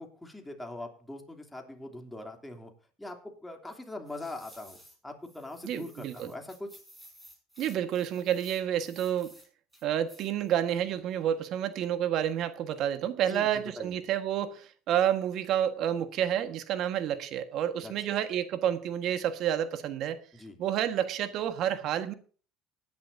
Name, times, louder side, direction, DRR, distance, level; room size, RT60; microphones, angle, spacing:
voice 1, 0.0-2.7 3.0-6.7 13.3-14.0 17.8-17.9 20.3-20.6, left 2 dB, 10° left, 2.9 m, -42 dB
sound 1, 4.1-5.0 5.2-9.5 9.7-10.5 10.9-11.0, equal, 10° right, 7.0 m, -55 dB
voice 2, 5.6-6.3 7.6-9.3 9.8-20.2 20.6-22.1, right 10 dB, 60° right, 1.5 m, -29 dB
19.5 x 10.5 x 2.7 m
supercardioid pair, 90°, 0 cm